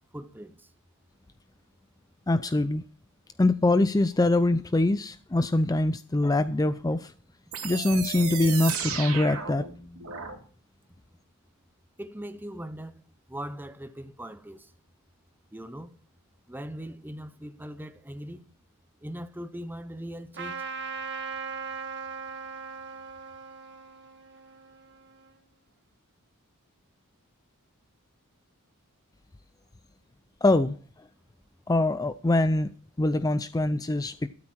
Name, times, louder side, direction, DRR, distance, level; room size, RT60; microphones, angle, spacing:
voice 1, 0.1-0.7 12.0-13.0 13.3-14.7 15.5-16.0 16.5-18.5 19.0-20.7, equal, 10° right, 0.9 m, -40 dB
voice 2, 2.3-2.8 3.4-7.1 7.6-9.6 30.4-30.8 31.7-32.7 33.0-34.3, left 2 dB, 15° left, 0.5 m, -24 dB
sound 1, 7.5-10.4, right 7 dB, 75° right, 3.1 m, -34 dB
Trumpet, 20.3-25.4, right 5 dB, 55° right, 1.6 m, -39 dB
13.0 x 12.5 x 4.5 m
head